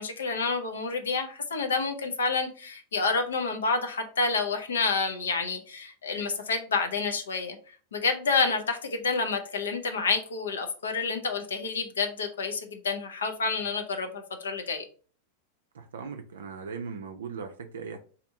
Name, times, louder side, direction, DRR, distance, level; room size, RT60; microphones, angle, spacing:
voice 1, 0.0-7.6 7.9-14.8, left 4 dB, 65° left, 0.6 m, -29 dB
voice 2, 15.7-18.0, right 5 dB, 65° right, 0.4 m, -38 dB
2.8 x 2.6 x 4.3 m
figure-of-eight pair, 90°, 0 cm